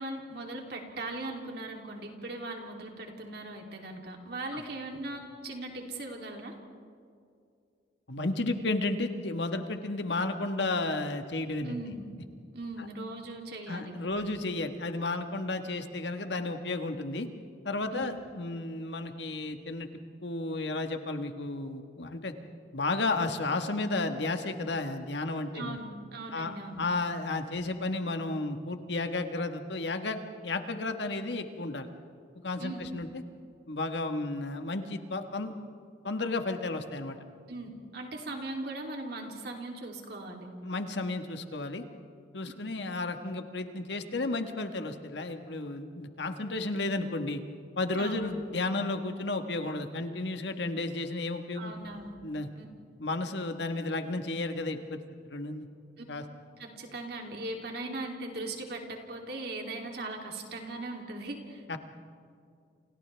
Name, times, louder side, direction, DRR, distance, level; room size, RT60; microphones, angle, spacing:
voice 1, 0.0-6.5 11.6-12.0 12.5-14.4 17.9-18.0 25.5-26.8 32.6-32.9 37.5-40.5 48.0-48.3 51.5-52.1 52.6-52.7 56.6-61.6, right 2 dB, 65° right, 1 dB, 3.1 m, -39 dB
voice 2, 8.1-11.8 13.7-17.3 17.6-19.9 20.2-22.3 22.7-25.8 26.3-31.9 32.4-33.2 33.7-35.5 36.0-37.2 40.6-41.8 42.3-47.4 47.8-51.7 52.2-52.5 53.0-55.0 55.2-55.7 56.1-56.2 61.7-61.8, left 2 dB, 80° left, 6 dB, 1.5 m, -33 dB
29.5 x 28.0 x 3.5 m, 2.3 s
head